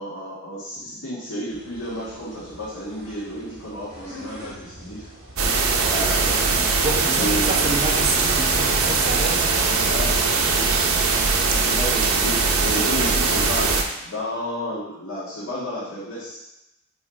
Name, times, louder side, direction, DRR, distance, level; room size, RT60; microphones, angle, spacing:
voice 1, 0.0-5.1 5.8-6.4 7.2-7.5 9.9-10.1 11.7-16.4, equal, 70° left, -10 dB, 1.6 m, -31 dB
sound 1, 1.5-12.0, right 1 dB, 65° right, 2.0 m, -41 dB
sound 2, 5.4-13.8, right 4 dB, 85° right, 0.7 m, -21 dB
voice 2, 6.8-11.1, right 2 dB, 30° right, -3 dB, 1.0 m, -29 dB
4.6 x 4.2 x 5.0 m, 0.88 s
head